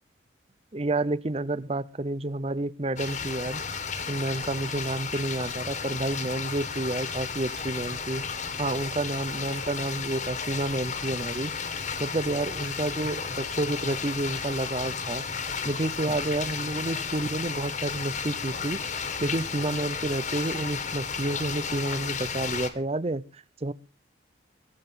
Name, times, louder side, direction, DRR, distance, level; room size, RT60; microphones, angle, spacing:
voice 1, 0.7-3.6 4.1-8.2 8.6-11.5 12.0-15.2 15.6-23.7, right 2 dB, 30° right, 0.6 m, -30 dB
sound 1, 3.0-22.7, left 5 dB, 40° left, 1.8 m, -33 dB
22.0 x 7.6 x 5.7 m
head